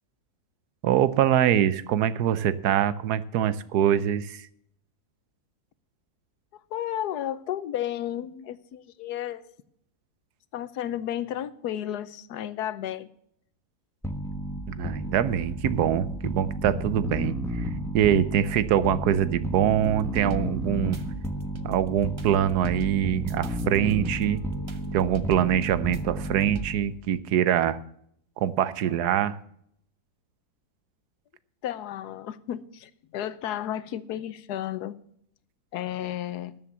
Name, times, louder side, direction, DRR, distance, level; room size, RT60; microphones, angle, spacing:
voice 1, 0.8-4.5 14.7-21.0 21.6-24.4 24.9-27.8 28.4-29.4, right 10 dB, 85° right, 15 dB, 1.3 m, -24 dB
voice 2, 6.7-9.4 10.5-13.1 31.6-35.0 35.7-36.6, left 11 dB, 85° left, 15 dB, 1.3 m, -33 dB
sound 1, 14.0-26.9, equal, ahead, 1.1 m, -32 dB
sound 2, 19.8-26.6, right 5 dB, 45° right, 0.3 m, -43 dB
13.0 x 7.3 x 7.1 m, 0.70 s
omnidirectional pair, 1.7 m